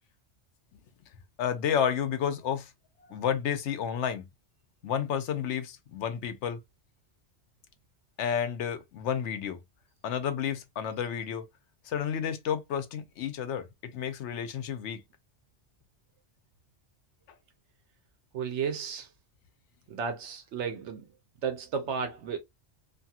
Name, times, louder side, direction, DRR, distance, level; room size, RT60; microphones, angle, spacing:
voice 1, 1.4-2.7 3.1-4.2 4.8-6.6 8.2-9.6 10.0-11.4 11.8-15.0, left 8 dB, 75° left, 0.9 m, -31 dB
voice 2, 18.3-19.1 19.9-21.0 21.4-22.4, right 6 dB, 75° right, 0.9 m, -33 dB
2.6 x 2.3 x 2.7 m
omnidirectional pair, 1.2 m